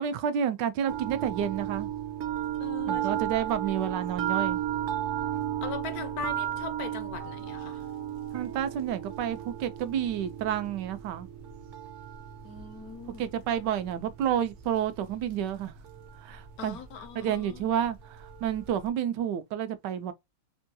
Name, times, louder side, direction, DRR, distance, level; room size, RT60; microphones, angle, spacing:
voice 1, 0.0-1.9 2.9-4.6 8.3-11.3 13.2-15.7 16.2-16.8 17.2-20.1, right 9 dB, 90° right, 1.2 m, -30 dB
sound 1, 0.9-18.9, right 11 dB, 65° right, 0.7 m, -35 dB
voice 2, 2.6-3.2 5.6-7.8 12.4-13.3 16.6-17.7, left 6 dB, 70° left, 1.0 m, -40 dB
3.5 x 2.2 x 2.7 m
omnidirectional pair, 1.8 m